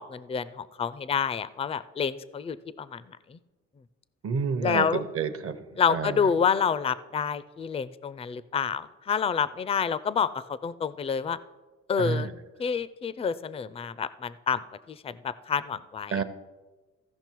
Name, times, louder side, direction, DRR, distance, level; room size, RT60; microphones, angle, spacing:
voice 1, 0.0-3.4 4.6-5.0 5.8-11.4 11.9-12.3 12.6-16.2, left 6 dB, 20° left, 16 dB, 0.4 m, -28 dB
voice 2, 4.2-5.6 5.9-6.2 12.0-12.3 16.1-16.2, right 5 dB, 50° right, 11 dB, 0.8 m, -29 dB
15.0 x 5.4 x 4.6 m, 1.2 s
cardioid pair, 90°, 30 cm